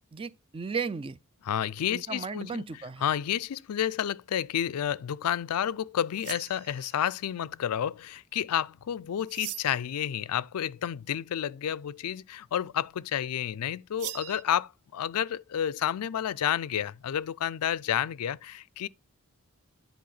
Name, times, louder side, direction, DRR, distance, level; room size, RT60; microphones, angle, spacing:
voice 1, 0.1-1.2 1.9-3.0, right 5 dB, 25° right, 0.3 m, -35 dB
voice 2, 1.5-2.7 3.0-18.9, left 10 dB, 90° left, 0.4 m, -30 dB
sound 1, 6.1-7.1 9.3-9.9 14.0-14.4, right 14 dB, 85° right, 0.5 m, -40 dB
10.5 x 4.6 x 3.9 m
head